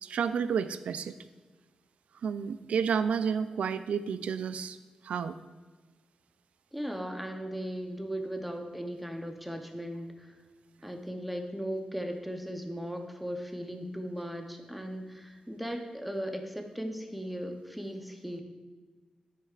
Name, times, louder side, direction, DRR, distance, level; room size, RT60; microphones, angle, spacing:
voice 1, 0.0-1.2 2.2-4.8 5.0-5.4, right 7 dB, 90° right, 12 dB, 0.3 m, -30 dB
voice 2, 6.7-10.4 10.8-18.4, equal, ahead, 4 dB, 0.6 m, -37 dB
9.9 x 7.6 x 2.4 m, 1.3 s
wide cardioid pair, 180°, 2 cm